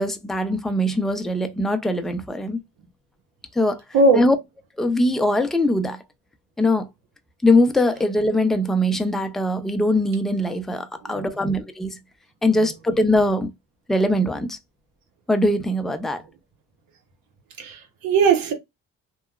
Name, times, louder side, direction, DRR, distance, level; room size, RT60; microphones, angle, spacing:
voice 1, 0.0-2.6 3.5-3.8 4.2-4.4 4.8-6.0 6.6-6.9 7.4-12.0 12.4-13.5 13.9-14.6 15.3-16.2, left 1 dB, ahead, 0.4 m, -21 dB
voice 2, 17.6-18.5, right 4 dB, 80° right, 1.0 m, -19 dB
2.8 x 2.2 x 2.3 m
cardioid pair, 80°, 34 cm